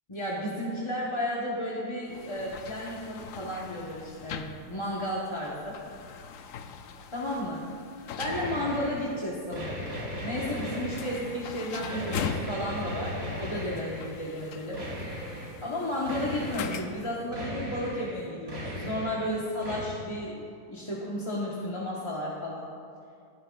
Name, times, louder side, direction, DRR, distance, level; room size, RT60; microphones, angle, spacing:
voice 1, 0.1-5.8 7.1-7.7 8.2-9.9 10.2-14.8 15.6-22.7, left 1 dB, 20° left, -6 dB, 1.2 m, -33 dB
sound 1, 2.1-17.2, left 7 dB, 65° left, 0.9 m, -42 dB
sound 2, 8.2-9.1 9.5-11.4 11.8-14.2 14.7-15.6 16.1-16.9 17.3-18.2 18.5-19.3 19.6-19.8, equal, 70° right, 3.4 m, -37 dB
18.5 x 12.0 x 2.5 m, 2.4 s
omnidirectional pair, 1.7 m